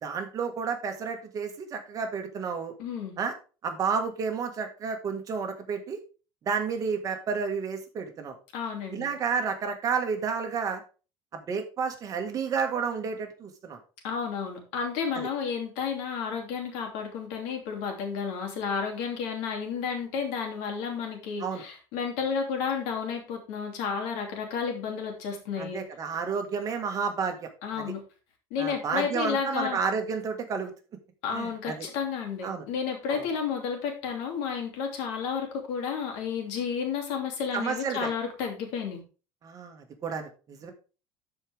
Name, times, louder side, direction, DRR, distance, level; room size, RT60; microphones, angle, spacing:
voice 1, 0.0-2.7 3.2-3.3 3.6-6.0 6.5-8.4 8.9-10.8 11.3-13.8 15.2-15.3 21.4-21.6 25.6-27.5 27.8-27.9 28.6-30.7 31.3-31.9 32.4-32.6 33.1-33.2 37.5-38.1 39.4-40.7, right 5 dB, 35° right, 4 dB, 1.7 m, -31 dB
voice 2, 2.8-3.2 8.5-9.1 14.0-25.8 27.6-28.0 28.5-29.8 31.2-39.0, left 6 dB, 80° left, 2 dB, 2.8 m, -31 dB
12.5 x 5.0 x 3.5 m, 0.35 s
cardioid pair, 145°, 11 cm